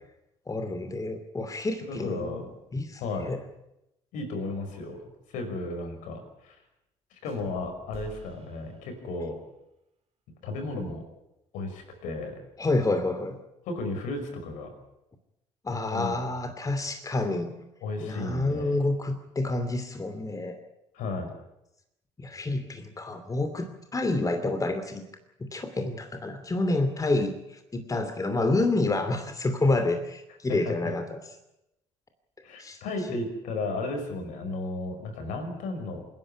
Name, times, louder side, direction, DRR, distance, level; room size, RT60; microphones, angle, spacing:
voice 1, 0.5-2.4 2.7-3.4 12.6-13.4 15.6-17.5 18.0-20.5 22.2-25.0 25.4-31.2 32.6-32.8, left 2 dB, 25° left, 7 dB, 2.7 m, -28 dB
voice 2, 1.8-2.5 3.0-3.3 4.1-5.0 5.3-6.6 7.1-9.4 10.4-11.0 11.5-12.4 13.7-14.7 15.7-16.1 17.8-18.8 20.9-21.3 30.5-30.7 32.4-36.0, left 2 dB, 65° left, 5 dB, 5.7 m, -34 dB
sound 1, 7.2-9.4, right 3 dB, 50° right, 3.5 m, -50 dB
27.0 x 11.5 x 9.9 m, 0.86 s
hypercardioid pair, 55°, 14 cm